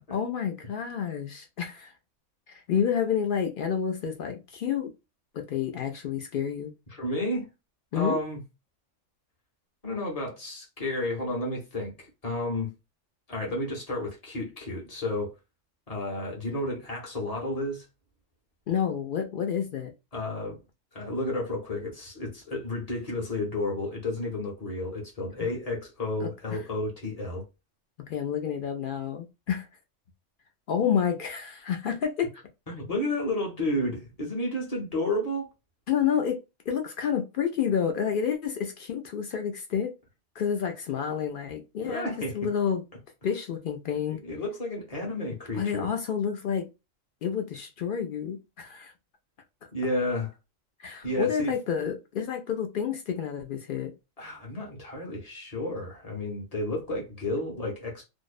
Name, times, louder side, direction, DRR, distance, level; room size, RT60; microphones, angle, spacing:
voice 1, 0.1-1.9 2.5-4.9 5.3-6.7 7.9-8.2 18.7-19.9 25.4-25.5 26.2-26.6 28.1-29.7 30.7-32.3 35.9-39.9 40.4-42.8 43.2-44.2 45.5-46.7 47.2-48.9 50.8-53.9, left 8 dB, 65° left, 0.5 m, -29 dB
voice 2, 6.9-7.5 7.9-8.4 9.8-12.7 13.3-15.3 15.9-17.8 20.1-20.6 20.9-27.4 32.7-35.5 41.8-42.5 43.9-45.9 49.7-50.3 51.0-51.5 54.2-58.0, left 1 dB, 35° left, 0.9 m, -31 dB
2.6 x 2.0 x 2.3 m
omnidirectional pair, 1.3 m